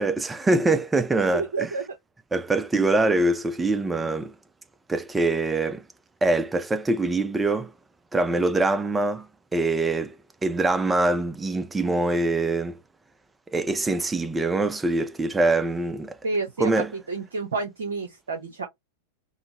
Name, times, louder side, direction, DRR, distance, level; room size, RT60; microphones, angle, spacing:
voice 1, 0.0-1.7 2.3-4.3 4.9-5.8 6.2-7.7 8.1-9.3 9.5-10.2 10.4-12.8 13.5-16.2 16.6-16.9, right 2 dB, 10° right, 0.4 m, -24 dB
voice 2, 1.2-1.8 16.2-16.7 17.1-18.7, right 3 dB, 65° right, 0.8 m, -29 dB
3.7 x 2.0 x 2.8 m
figure-of-eight pair, 90°, 0 cm